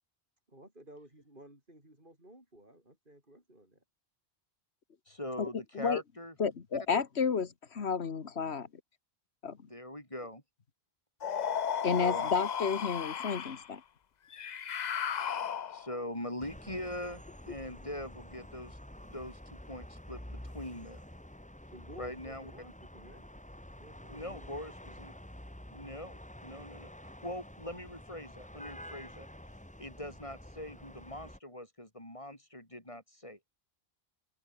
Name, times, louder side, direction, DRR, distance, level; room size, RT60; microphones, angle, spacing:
voice 1, 0.5-3.8 21.7-23.2 23.8-24.5, right 1 dB, 50° right, 8.2 m, -54 dB
voice 2, 5.1-6.3 6.9-7.0 9.6-10.4 12.0-12.3 15.7-21.0 22.0-22.5 24.1-25.1 25.7-29.3 29.8-33.4, left 1 dB, 30° left, 8.2 m, -42 dB
voice 3, 6.4-8.7 9.4-9.6 11.8-13.8, left 6 dB, 80° left, 1.7 m, -31 dB
sound 1, 11.2-13.7 14.3-16.0, left 8 dB, 45° left, 0.7 m, -34 dB
sound 2, 16.4-31.4, left 1 dB, 5° left, 1.7 m, -49 dB
open air
omnidirectional pair, 1.1 m